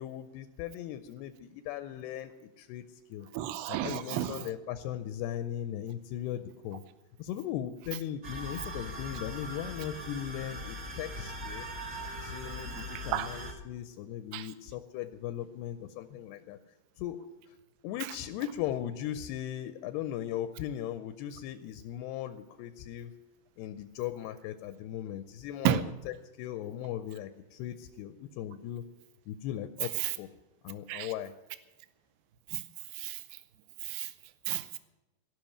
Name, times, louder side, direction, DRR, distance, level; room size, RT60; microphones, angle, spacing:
voice 1, 0.0-2.8 3.1-3.3 3.7-6.8 7.2-11.7 12.2-16.6 17.0-17.2 17.8-23.1 23.6-25.8 26.1-28.8 29.3-30.3 30.6-31.3, left 11 dB, 80° left, 2.5 m, -38 dB
voice 2, 3.3-4.5 13.1-13.3 14.3-14.5 25.6-25.8 30.0-30.1 30.9-31.1 32.5-32.6 32.9-33.2 33.8-34.1 34.5-34.8, right 13 dB, 80° right, 2.6 m, -32 dB
sound 1, 8.2-13.5, equal, 55° right, 1.0 m, -40 dB
18.0 x 6.0 x 9.9 m
omnidirectional pair, 4.9 m